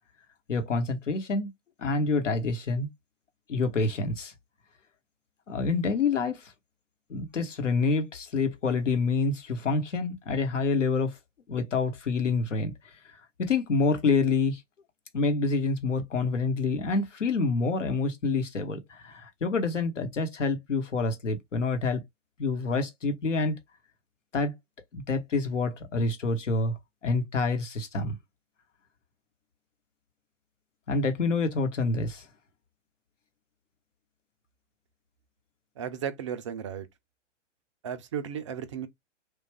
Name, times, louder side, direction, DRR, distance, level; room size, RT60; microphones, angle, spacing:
voice 1, 0.5-1.5 1.8-2.9 3.5-4.3 5.5-6.5 7.1-11.2 11.5-12.7 13.4-14.6 15.1-22.0 22.4-23.6 24.3-24.5 24.9-26.7 27.0-28.1 30.9-32.2, left 4 dB, 75° left, 1.1 m, -27 dB
voice 2, 35.8-36.9 37.8-38.9, right 8 dB, 25° right, 0.4 m, -34 dB
3.3 x 2.4 x 3.3 m
figure-of-eight pair, 120°, 37 cm